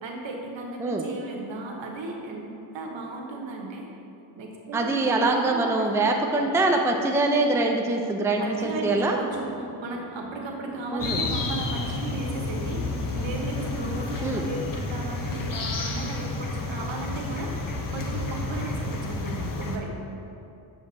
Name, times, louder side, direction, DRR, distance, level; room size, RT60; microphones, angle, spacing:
voice 1, 0.0-2.5 2.7-3.9 4.4-5.9 8.4-9.5 9.8-19.9, right 3 dB, 60° right, 1 dB, 1.2 m, -35 dB
voice 2, 4.7-9.2 10.9-11.2 14.2-14.5, right 2 dB, 5° right, 2 dB, 0.5 m, -24 dB
sound 1, 8.4-14.2, right 1 dB, 15° left, 1.2 m, -41 dB
sound 2, 11.0-19.8, left 3 dB, 40° left, 0.8 m, -30 dB
7.5 x 5.1 x 4.0 m, 2.7 s
cardioid pair, 70°, 49 cm